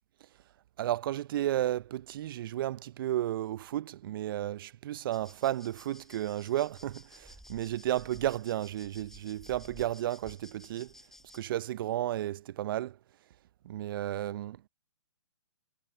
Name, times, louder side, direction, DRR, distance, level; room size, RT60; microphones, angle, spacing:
voice 1, 0.8-10.9 11.3-13.0 13.6-14.7, right 13 dB, 45° right, 0.7 m, -33 dB
sound 1, 5.1-11.4, left 1 dB, ahead, 4.7 m, -54 dB
figure-of-eight pair, 125°, 15 cm